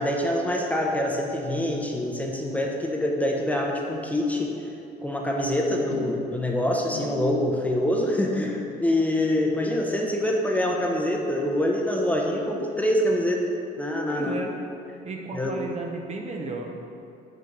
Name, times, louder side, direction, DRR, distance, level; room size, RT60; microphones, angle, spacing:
voice 1, 0.0-4.5 5.0-13.4 13.8-14.4 15.3-15.5, left 1 dB, 10° left, -1 dB, 0.7 m, -25 dB
sound 1, 5.9-12.5 12.8-13.2 13.5-13.6, left 4 dB, 90° left, 0.8 m, -42 dB
voice 2, 12.3-12.7 13.1-13.2 14.1-14.5 15.0-16.9, right 2 dB, 40° right, 2 dB, 0.8 m, -34 dB
6.2 x 4.5 x 5.3 m, 2.6 s
cardioid pair, 110°, 17 cm